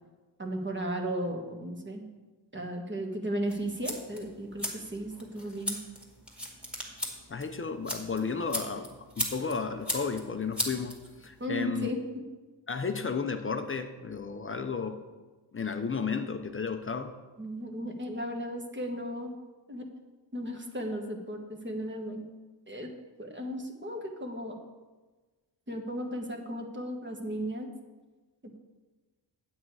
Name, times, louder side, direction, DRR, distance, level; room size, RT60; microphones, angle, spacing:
voice 1, 0.4-2.0 2.5-5.8 11.4-12.0 17.4-19.3 19.7-19.8 20.3-22.2 22.7-22.9 23.2-24.6 25.7-27.7 28.4-28.6, equal, 25° right, 3 dB, 1.4 m, -35 dB
sound 1, 3.5-11.5, equal, ahead, 2.1 m, -38 dB
voice 2, 7.3-11.9 12.7-15.0 15.5-17.2, left 5 dB, 30° left, 7 dB, 0.6 m, -33 dB
8.7 x 8.2 x 4.8 m, 1.3 s
cardioid pair, 90°, 46 cm